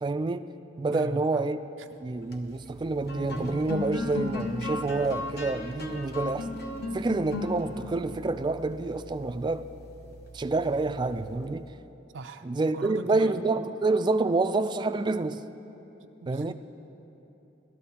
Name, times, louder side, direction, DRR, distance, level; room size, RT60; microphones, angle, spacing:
voice 1, 0.0-1.6 2.0-6.5 6.9-9.7 10.3-11.7 12.4-15.4 16.3-16.5, right 3 dB, 25° right, 10 dB, 0.3 m, -28 dB
sound 1, 2.1-11.7, left 2 dB, 60° left, 1.0 m, -37 dB
voice 2, 12.1-12.5 12.7-13.4 16.0-16.5, right 3 dB, 90° right, 6 dB, 0.5 m, -39 dB
18.5 x 12.5 x 2.9 m, 3.0 s
head